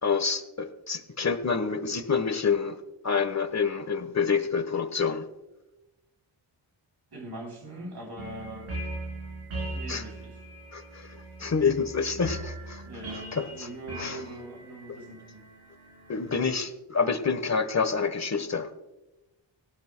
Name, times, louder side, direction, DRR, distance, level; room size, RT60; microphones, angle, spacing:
voice 1, 0.0-2.8 3.0-5.3 9.9-10.0 10.7-12.8 13.3-13.7 14.0-14.2 16.1-18.7, left 5 dB, 35° left, 10 dB, 1.3 m, -27 dB
voice 2, 7.1-8.7 9.7-10.4 12.8-15.5, right 1 dB, 55° right, 1 dB, 3.6 m, -42 dB
sound 1, 8.2-16.4, right 2 dB, 80° right, 3.7 m, -40 dB
18.0 x 12.5 x 2.2 m, 1.0 s
cardioid pair, 60°, 47 cm